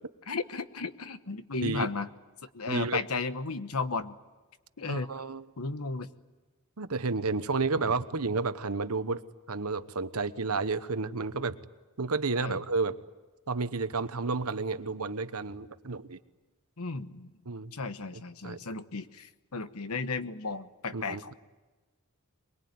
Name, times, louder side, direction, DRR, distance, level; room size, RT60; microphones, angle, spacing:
voice 1, 0.3-2.1 2.5-4.2 4.8-5.1 5.6-6.1 12.4-12.6 16.8-17.3 17.7-21.3, left 4 dB, 75° left, 11 dB, 1.2 m, -34 dB
voice 2, 2.7-3.0 4.9-5.4 6.8-11.5 12.0-13.0 13.5-16.2 17.5-17.7 18.4-18.6 20.9-21.3, right 3 dB, 75° right, 12 dB, 1.1 m, -31 dB
23.0 x 22.5 x 9.5 m, 1.2 s
head